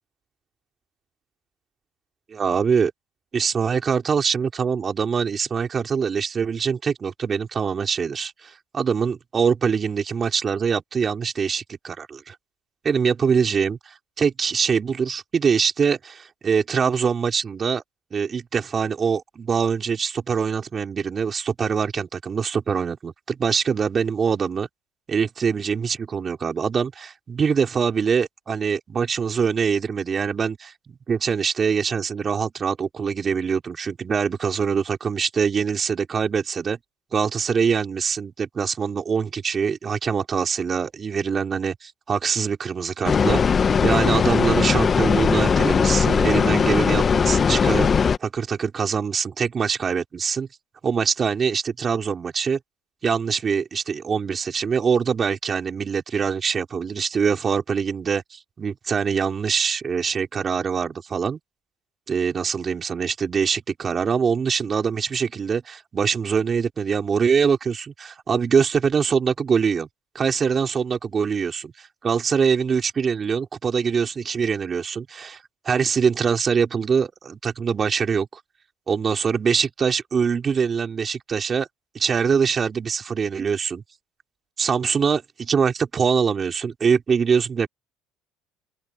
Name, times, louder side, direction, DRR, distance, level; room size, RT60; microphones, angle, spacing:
voice 1, 2.3-2.9 3.3-12.3 12.8-17.8 18.1-24.7 25.1-36.8 37.1-43.4 43.8-47.9 48.2-50.5 50.8-52.6 53.0-61.4 62.1-69.9 70.1-75.4 75.6-78.3 78.9-81.7 81.9-83.8 84.6-87.7, right 6 dB, 40° right, 4.9 m, -23 dB
sound 1, 43.0-48.2, left 6 dB, 35° left, 1.4 m, -19 dB
open air
supercardioid pair, 75°, 0 cm